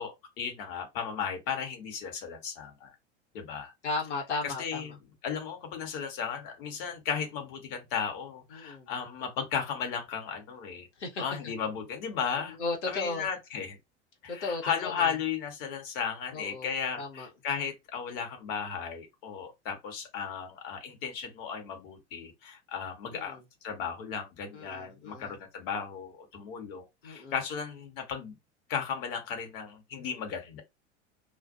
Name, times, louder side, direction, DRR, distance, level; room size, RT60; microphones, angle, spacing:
voice 1, 0.0-2.9 3.3-3.7 4.4-4.9 5.2-10.9 11.2-12.6 12.9-13.8 14.2-28.4 28.7-30.6, left 7 dB, 55° left, 1.1 m, -35 dB
voice 2, 3.8-4.9 8.5-8.9 11.0-11.5 12.6-13.3 14.3-14.9 16.3-16.7 17.0-17.3 23.1-23.4 24.5-25.3 27.0-27.3, left 3 dB, 80° left, 1.1 m, -35 dB
2.4 x 2.2 x 2.6 m
figure-of-eight pair, 80°, 35 cm